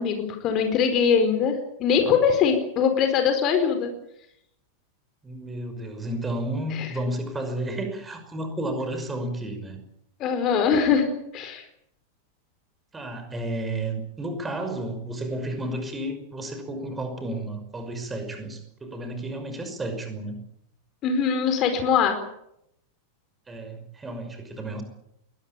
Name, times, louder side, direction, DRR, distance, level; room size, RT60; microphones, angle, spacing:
voice 1, 0.0-3.9 6.7-6.9 10.2-11.6 21.0-22.2, left 6 dB, 35° left, 7 dB, 4.6 m, -22 dB
voice 2, 5.2-9.8 12.9-20.4 23.5-24.8, right 1 dB, 15° right, 7 dB, 5.6 m, -32 dB
22.5 x 19.5 x 8.8 m, 0.78 s
figure-of-eight pair, 90°, 0 cm